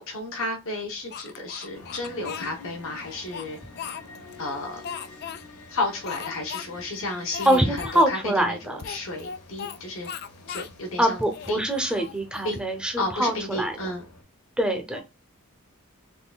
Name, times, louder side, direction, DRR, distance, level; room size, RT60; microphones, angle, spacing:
voice 1, 0.0-3.6 4.4-4.8 5.7-8.2 8.4-8.6 8.8-10.1 10.5-11.2 11.5-11.6 12.4-12.6 13.0-14.0, left 2 dB, 60° left, 1.0 m, -32 dB
Speech, 1.1-2.5 3.1-4.4 4.8-5.4 6.0-6.7 6.9-7.0 7.3-8.1 8.8-9.8 10.0-10.7 11.2-12.6, left 7 dB, 45° left, 0.3 m, -37 dB
sound 1, 1.7-14.2, left 3 dB, 90° left, 1.0 m, -48 dB
voice 2, 7.4-8.8 11.0-13.9 14.6-15.0, right 1 dB, 5° right, 0.7 m, -24 dB
3.7 x 3.2 x 2.3 m
head